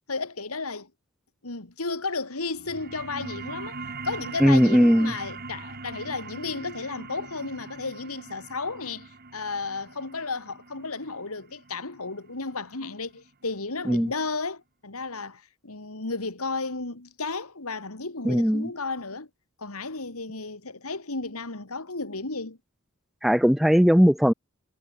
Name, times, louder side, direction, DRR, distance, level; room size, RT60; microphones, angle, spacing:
voice 1, 0.1-0.9 1.4-3.8 4.0-19.3 19.6-22.6, left 3 dB, 80° left, 2.7 m, -33 dB
sound 1, 2.6-13.7, right 4 dB, 45° right, 3.1 m, -41 dB
voice 2, 4.4-5.1 13.9-14.1 18.2-18.7 23.2-24.3, equal, ahead, 0.7 m, -19 dB
head